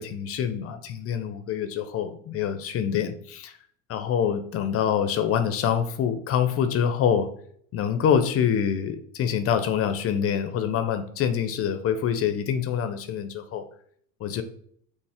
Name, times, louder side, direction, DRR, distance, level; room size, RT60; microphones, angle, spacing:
voice 1, 0.0-3.5 3.9-7.3 7.7-13.6 14.2-14.4, left 8 dB, 35° left, 9 dB, 0.5 m, -25 dB
5.9 x 2.1 x 3.4 m, 0.62 s
hypercardioid pair, 80°, 44 cm